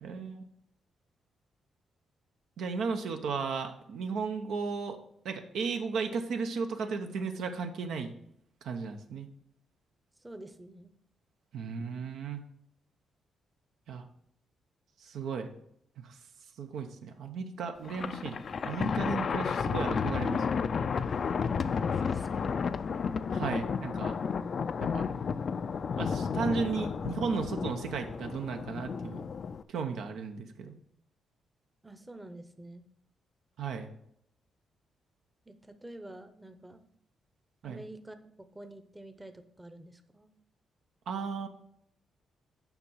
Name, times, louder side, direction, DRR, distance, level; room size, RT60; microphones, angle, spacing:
voice 1, 0.0-0.4 2.6-5.0 5.2-8.1 8.6-9.3 11.5-12.4 13.9-14.0 15.0-15.5 16.0-16.2 16.6-18.4 18.6-20.4 23.3-24.2 24.8-25.0 26.0-29.3 29.7-30.7 33.6-33.9 37.6-37.8 41.1-41.5, right 5 dB, 80° right, 5 dB, 0.8 m, -35 dB
voice 2, 10.2-10.9 21.9-22.6 31.8-32.9 35.5-36.8 37.6-38.2 38.5-40.3, right 1 dB, 15° right, 8 dB, 0.8 m, -48 dB
Thunder, 17.8-29.6, left 6 dB, 55° left, 0.4 m, -32 dB
7.1 x 5.3 x 5.6 m, 0.73 s
cardioid pair, 85°, 0 cm